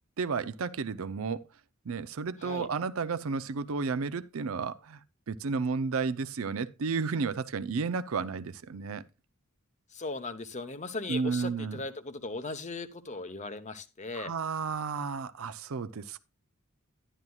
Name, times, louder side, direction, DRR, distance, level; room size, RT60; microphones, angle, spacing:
voice 1, 0.2-1.4 1.9-5.0 5.3-9.0 11.1-11.8 14.2-16.2, right 5 dB, 75° right, 0.5 m, -32 dB
voice 2, 9.9-14.3, left 3 dB, 35° left, 0.9 m, -38 dB
11.0 x 10.5 x 2.3 m
head